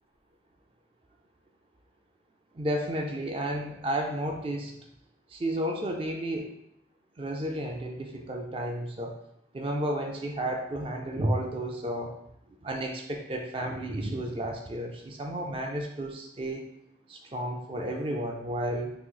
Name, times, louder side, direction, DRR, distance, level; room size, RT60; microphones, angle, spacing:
voice 1, 2.5-4.7 5.3-6.5 7.2-9.2 9.5-12.1 12.6-16.7 17.1-18.9, right 1 dB, 30° right, 2 dB, 0.3 m, -32 dB
3.0 x 2.6 x 3.8 m, 0.76 s
head